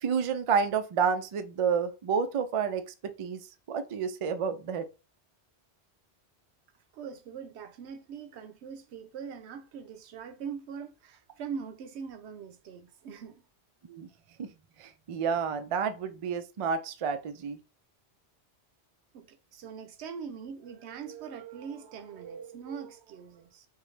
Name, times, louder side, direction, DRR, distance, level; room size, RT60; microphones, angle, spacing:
voice 1, 0.0-3.4 3.7-4.9 13.9-14.1 14.4-14.5 14.8-17.6, right 6 dB, 65° right, 0.3 m, -30 dB
voice 2, 6.9-13.4 19.1-23.7, right 6 dB, 90° right, 0.9 m, -42 dB
3.6 x 2.9 x 3.2 m
omnidirectional pair, 1.1 m